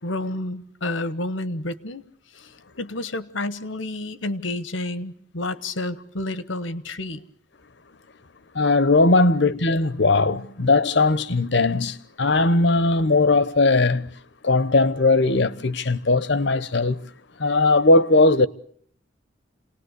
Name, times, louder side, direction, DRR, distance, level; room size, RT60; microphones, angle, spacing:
voice 1, 0.0-2.0 2.4-2.5 2.8-7.2, left 2 dB, 85° left, 1.3 m, -30 dB
voice 2, 8.5-14.1 14.4-17.0 17.4-18.5, left 3 dB, 65° left, 1.0 m, -19 dB
28.0 x 19.0 x 8.2 m
head